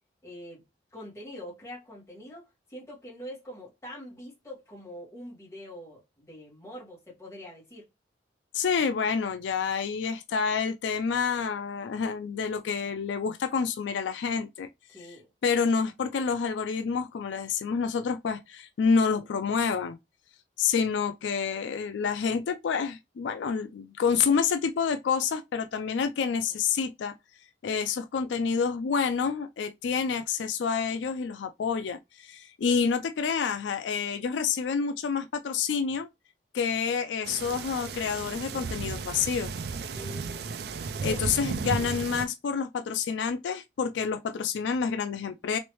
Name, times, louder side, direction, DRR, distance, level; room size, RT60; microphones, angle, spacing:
voice 1, 0.2-0.6 0.9-7.9 14.9-15.3 26.4-26.5 39.9-40.5 40.8-41.3, left 1 dB, 15° left, 1.5 m, -44 dB
voice 2, 8.5-14.7 15.1-15.2 15.4-20.0 20.6-27.1 27.6-36.1 36.5-39.5 41.0-45.6, left 6 dB, 85° left, 0.4 m, -28 dB
sound 1, 37.2-42.3, right 4 dB, 60° right, 0.3 m, -34 dB
3.2 x 3.0 x 3.0 m
head